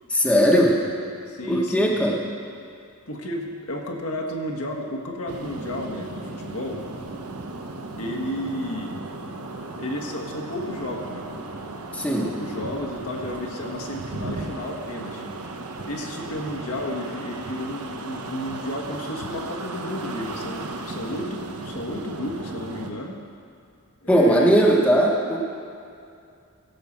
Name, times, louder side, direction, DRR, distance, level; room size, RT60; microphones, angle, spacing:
voice 1, 0.1-0.8 1.5-2.2 11.9-12.3 24.1-25.4, equal, 5° left, -2 dB, 1.1 m, -18 dB
voice 2, 1.3-2.0 3.1-6.8 8.0-8.9 9.8-11.3 12.0-15.3 15.8-23.2 24.0-24.8, left 1 dB, 70° left, 1 dB, 1.5 m, -32 dB
sound 1, 5.3-22.9, right 2 dB, 85° right, 1.0 m, -36 dB
16.0 x 5.6 x 7.3 m, 2.4 s
head